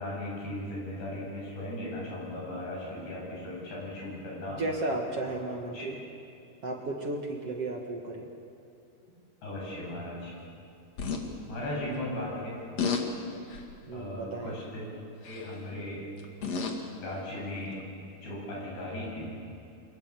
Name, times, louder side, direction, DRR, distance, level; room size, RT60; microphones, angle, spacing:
voice 1, 0.0-4.6 5.7-5.9 9.4-10.3 11.5-12.5 13.9-14.9 15.2-16.0 17.0-17.8 18.2-19.3, left 1 dB, 80° left, -4 dB, 10.0 m, -37 dB
voice 2, 4.5-6.0 6.6-8.3 13.9-14.6, right 2 dB, 45° right, 1 dB, 2.2 m, -34 dB
sound 1, 11.0-11.2 12.8-13.1 13.5-13.8 15.2-15.6 16.2-16.9 17.8-17.9, left 5 dB, 45° left, 2.9 m, -31 dB
28.0 x 26.0 x 7.7 m, 2.6 s
omnidirectional pair, 4.8 m